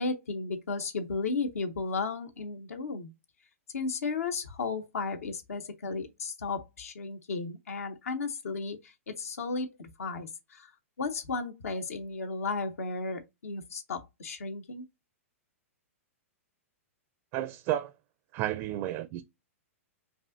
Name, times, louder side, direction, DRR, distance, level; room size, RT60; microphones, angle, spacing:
voice 1, 0.0-3.1 3.7-10.7 11.0-14.8, left 4 dB, 80° left, 0.8 m, -34 dB
voice 2, 17.3-17.9 18.3-19.2, right 13 dB, 40° right, 0.4 m, -32 dB
5.2 x 2.5 x 2.5 m
hypercardioid pair, 125°, 8 cm